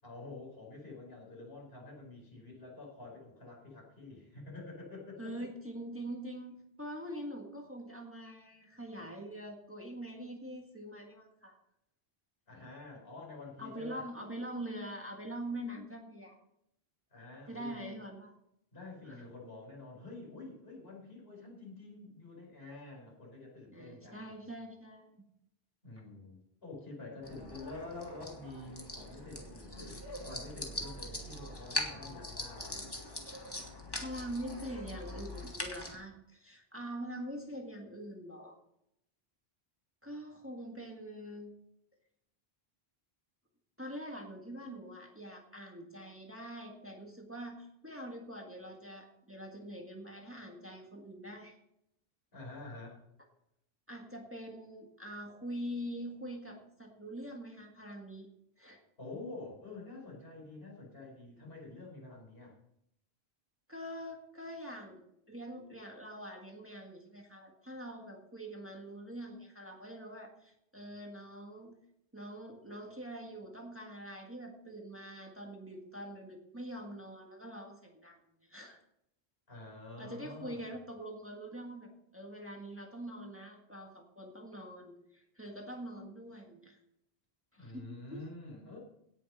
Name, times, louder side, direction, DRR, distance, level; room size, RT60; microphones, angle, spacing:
voice 1, 0.0-5.5 12.5-14.0 17.1-18.0 18.7-24.3 25.8-32.9 52.3-53.0 59.0-62.5 79.5-80.7 87.6-88.8, left 2 dB, 75° left, -3 dB, 5.3 m, -48 dB
voice 2, 5.2-11.5 13.6-16.4 17.5-18.4 19.0-19.2 23.7-25.0 34.0-38.6 40.0-41.6 43.8-51.5 53.9-58.3 58.6-58.8 63.7-65.0 65.3-71.8 72.1-78.8 80.0-86.8 87.5-88.2, right 1 dB, 15° right, 1 dB, 1.7 m, -44 dB
sound 1, 27.2-35.9, left 1 dB, 25° left, 2.0 m, -42 dB
17.5 x 6.7 x 5.4 m, 0.77 s
omnidirectional pair, 1.0 m